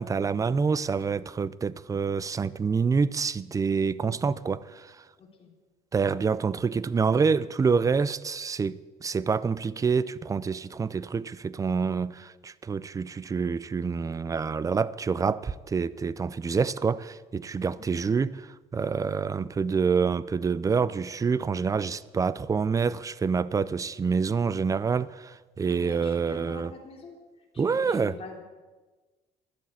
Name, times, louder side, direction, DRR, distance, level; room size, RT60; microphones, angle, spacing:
voice 1, 0.0-5.0 5.9-26.7 27.6-28.2, right 5 dB, 20° right, 0.4 m, -27 dB
voice 2, 5.2-5.5 17.6-17.8 25.6-27.2 27.5-28.4, left 4 dB, 35° left, 3.2 m, -45 dB
12.0 x 7.2 x 8.4 m
cardioid pair, 110°, 17 cm